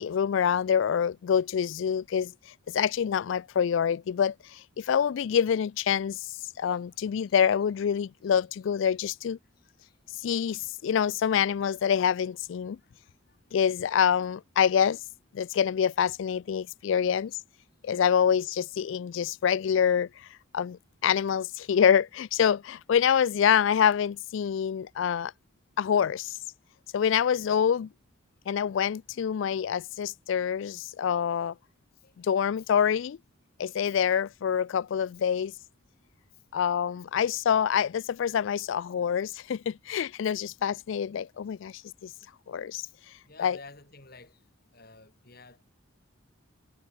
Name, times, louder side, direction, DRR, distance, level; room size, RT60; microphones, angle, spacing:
voice 1, 0.0-2.3 2.7-9.4 10.2-12.8 13.5-15.0 15.3-17.4 17.8-20.3 20.5-25.3 25.8-26.4 26.9-27.9 28.5-31.5 32.2-33.2 33.6-35.5 36.5-42.1 42.5-42.9 43.4-43.6, left 8 dB, 70° left, 0.3 m, -26 dB
voice 2, 6.9-7.3 9.8-9.9 13.0-13.1 32.0-32.1 33.9-34.0 42.8-42.9 43.3-44.4 44.7-45.6, left 3 dB, 50° left, 4.7 m, -51 dB
head